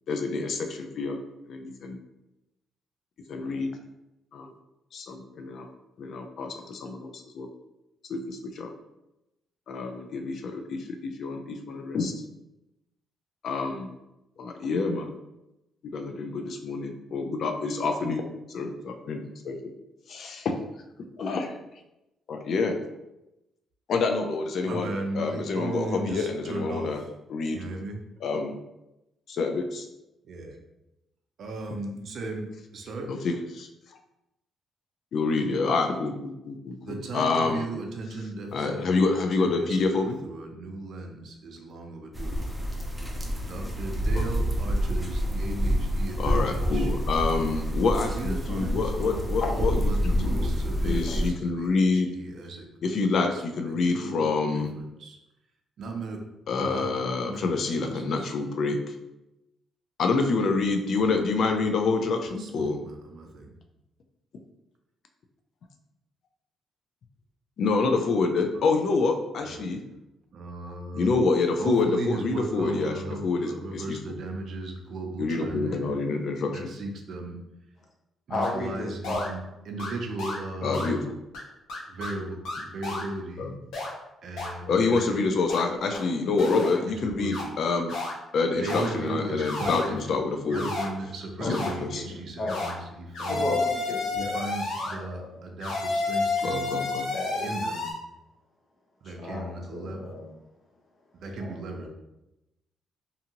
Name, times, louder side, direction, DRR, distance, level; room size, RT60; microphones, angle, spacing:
voice 1, 0.1-1.2 1.5-2.0 3.3-3.7 4.3-4.5 4.9-5.7 6.0-7.5 8.1-8.7 9.7-12.1 13.4-13.9 14.4-15.1 15.9-18.2 18.5-19.5 20.1-20.5 21.2-21.5 22.3-22.7 23.9-27.0 27.3-27.6 28.2-28.6 29.3-29.9 33.1-33.7 35.1-37.7 38.5-40.2 44.2-44.3 46.2-50.5 50.8-52.1 52.8-54.7 56.5-58.8 60.0-62.8 67.6-69.8 70.9-74.0 75.2-76.7 80.6-81.1 83.4-83.5 84.7-87.9 88.3-90.6 91.4-92.0 96.4-97.1, left 4 dB, 65° left, 5 dB, 0.3 m, -27 dB
voice 2, 24.6-27.0 27.5-28.0 30.2-30.6 31.4-33.1 36.8-42.5 43.3-46.9 48.1-52.7 53.2-55.2 55.8-56.2 56.6-56.9 57.2-58.3 60.9-61.2 62.2-63.5 69.4-69.7 70.3-71.1 71.6-75.9 76.5-77.4 78.3-79.4 79.7-81.0 81.9-83.5 84.2-85.3 86.9-87.6 88.6-90.2 90.4-93.5 94.1-96.8 97.4-97.9 99.0-100.0 101.1-101.9, right 2 dB, 65° right, 3 dB, 0.5 m, -36 dB
sound 1, 42.1-51.3, equal, 10° right, 0.6 m, -28 dB
voice 3, 78.3-79.3 80.6-80.8 91.4-91.7 92.1-92.5 93.3-94.4 94.8-95.3 97.1-97.5 99.2-100.3 101.4-101.9, left 2 dB, 45° left, 0 dB, 0.8 m, -34 dB
sound 2, 78.4-78.5 79.0-79.3 79.8-79.9 80.2-80.4 80.7-80.9 81.3-81.4 81.7-82.1 82.5-83.1 83.7-83.9 84.4-84.5 85.0-85.1 85.5-85.6 85.9-86.0 86.4-86.8 87.3-87.4 87.9-88.1 88.6-88.9 89.4-89.9 90.5-90.9 91.5-91.7 92.5-92.7 93.1-95.0 95.6-97.9, left 3 dB, 80° left, 0.9 m, -30 dB
2.6 x 2.5 x 2.8 m, 0.92 s
cardioid pair, 90°, 0 cm